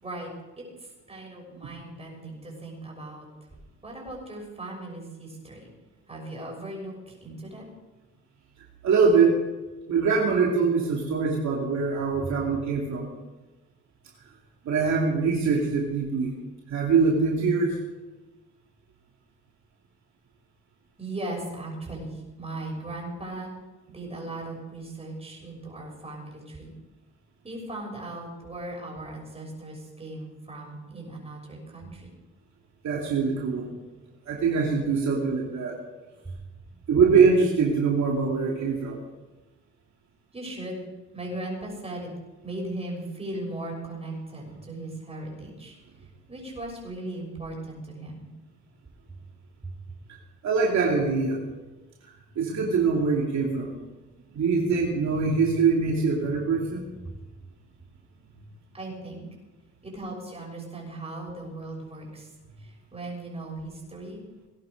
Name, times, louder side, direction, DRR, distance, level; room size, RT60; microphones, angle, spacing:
voice 1, 0.6-3.2 3.8-5.6 6.1-7.7 12.2-12.3 21.0-23.5 23.9-26.7 27.4-32.1 36.2-36.4 40.3-40.8 41.1-42.1 42.4-45.8 46.3-48.3 49.6-49.7 57.0-57.1 58.7-59.2 59.8-62.3 62.6-64.2, right 2 dB, 20° right, -1 dB, 6.4 m, -38 dB
voice 2, 8.8-9.4 9.9-13.1 14.6-16.3 16.7-17.8 32.8-33.7 34.3-35.7 36.9-39.0 50.4-51.4 52.4-53.7 54.3-56.9, right 5 dB, 65° right, -2 dB, 2.7 m, -23 dB
19.5 x 11.0 x 5.2 m, 1.2 s
cardioid pair, 90°, 30 cm